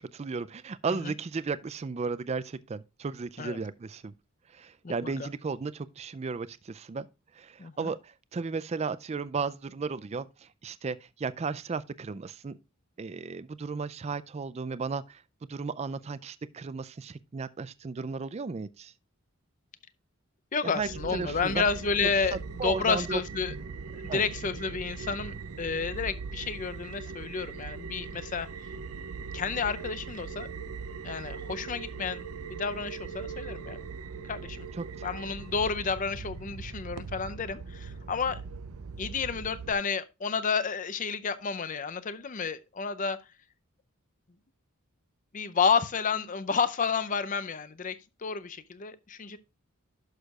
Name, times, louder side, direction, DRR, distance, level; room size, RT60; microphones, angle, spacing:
voice 1, 0.1-4.1 4.5-7.1 7.3-12.6 13.0-15.2 15.5-18.9 20.6-21.6 22.0-23.2 24.1-24.2 34.7-35.1, right 4 dB, 30° right, 0.3 m, -35 dB
voice 2, 4.8-5.3 7.6-7.9 20.5-22.4 22.6-23.5 23.9-28.7 29.3-30.5 31.0-32.2 32.5-33.8 34.3-34.7 35.0-38.4 39.0-43.2 45.3-49.4, left 5 dB, 35° left, 0.5 m, -31 dB
sound 1, 20.8-39.7, right 5 dB, 80° right, 0.6 m, -40 dB
11.5 x 6.4 x 2.3 m
head